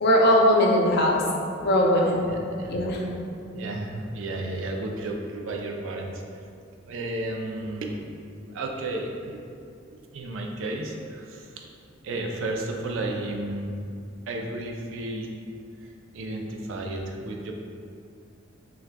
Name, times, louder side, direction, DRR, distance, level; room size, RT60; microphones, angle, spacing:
voice 1, 0.0-1.2 1.6-2.2 2.7-3.0, equal, 55° left, -1 dB, 0.5 m, -19 dB
voice 2, 2.2-2.7 3.5-6.2 6.8-8.1 8.5-9.4 10.1-11.7 12.0-13.8 14.3-15.3 15.8-17.5, right 2 dB, 70° right, 1 dB, 0.4 m, -33 dB
5.9 x 2.3 x 2.2 m, 2.4 s
head